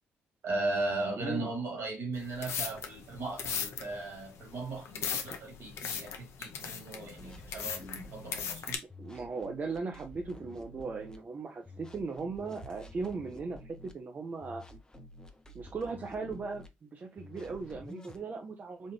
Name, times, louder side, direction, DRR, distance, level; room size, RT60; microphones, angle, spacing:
voice 1, 0.4-8.8, right 2 dB, 65° right, 2.3 m, -37 dB
voice 2, 1.2-1.5 9.0-14.6 15.5-18.9, right 4 dB, 40° right, 0.7 m, -38 dB
sound 1, 2.1-8.8, left 7 dB, 70° left, 0.7 m, -38 dB
sound 2, 7.2-8.4 8.9-11.2 11.6-13.9 14.4-16.7 17.2-18.2, left 1 dB, 15° left, 0.8 m, -50 dB
4.2 x 2.5 x 3.1 m
supercardioid pair, 55°, 5 cm